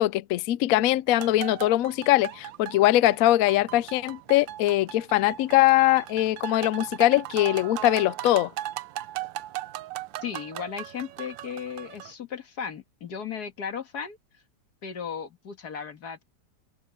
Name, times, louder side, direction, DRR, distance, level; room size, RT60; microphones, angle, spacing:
voice 1, 0.0-8.5, left 15 dB, 75° left, 0.8 m, -22 dB
sound 1, 1.1-12.1, right 14 dB, 90° right, 1.4 m, -38 dB
voice 2, 10.2-14.2 14.8-16.2, left 7 dB, 60° left, 2.2 m, -36 dB
open air
omnidirectional pair, 2.0 m